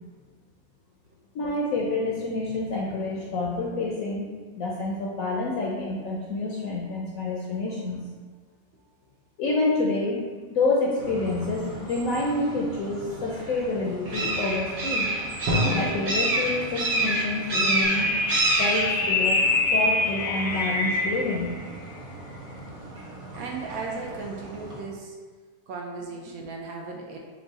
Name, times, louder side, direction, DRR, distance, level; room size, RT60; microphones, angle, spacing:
voice 1, 1.3-4.3 4.6-8.0 9.4-10.2 10.5-15.1 15.7-18.1 18.6-19.4 19.7-21.6, left 2 dB, 70° left, -3 dB, 0.9 m, -28 dB
sound 1, 11.0-24.8, right 1 dB, 50° right, 0.4 m, -30 dB
Drum, 15.5-18.2, left 1 dB, 90° right, 1.4 m, -30 dB
sound 2, 17.8-21.3, left 2 dB, 85° left, 1.2 m, -25 dB
voice 2, 23.4-25.2 25.7-27.2, right 4 dB, 70° right, 0 dB, 0.9 m, -36 dB
4.5 x 2.1 x 3.9 m, 1.5 s
omnidirectional pair, 1.7 m